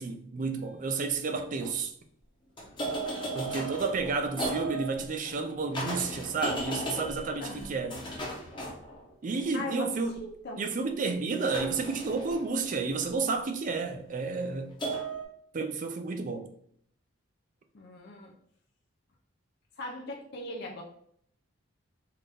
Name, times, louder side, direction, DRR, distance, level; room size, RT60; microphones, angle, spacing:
voice 1, 0.0-1.9 3.4-8.0 9.2-10.2 10.6-14.7 15.5-16.5, right 4 dB, 35° right, 0.4 m, -31 dB
sound 1, 0.6-0.7 1.3-1.7 2.6-9.5 11.5-13.5 14.8-15.2, right 1 dB, 20° left, 0.8 m, -36 dB
voice 2, 7.4-7.7 9.5-9.9 10.2-10.6 17.7-18.3 19.8-20.8, left 1 dB, 50° left, 0.5 m, -39 dB
3.8 x 2.6 x 3.3 m
head